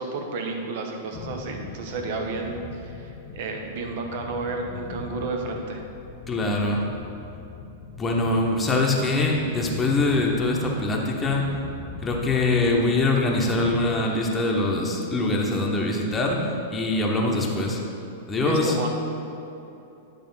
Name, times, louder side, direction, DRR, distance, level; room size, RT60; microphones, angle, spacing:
voice 1, 0.0-5.8 18.3-18.9, right 3 dB, 50° right, 3 dB, 0.9 m, -31 dB
sound 1, 1.1-14.0, left 6 dB, 35° left, 0.6 m, -41 dB
voice 2, 6.3-6.8 8.0-11.4 12.0-17.8 18.3-18.8, left 2 dB, 15° left, -1 dB, 1.0 m, -23 dB
10.5 x 3.6 x 5.6 m, 2.9 s
figure-of-eight pair, 95°, 0 cm